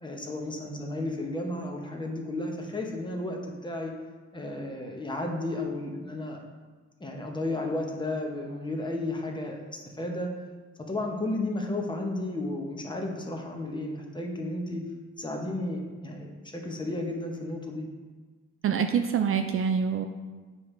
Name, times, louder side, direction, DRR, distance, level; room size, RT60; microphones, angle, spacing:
voice 1, 0.0-3.9 4.3-6.4 7.0-10.3 10.9-14.8 15.2-17.9, left 2 dB, 15° left, 1 dB, 1.0 m, -33 dB
voice 2, 18.6-20.1, right 7 dB, 45° right, 6 dB, 0.4 m, -25 dB
7.1 x 4.7 x 3.3 m, 1.4 s
cardioid pair, 90°, 30 cm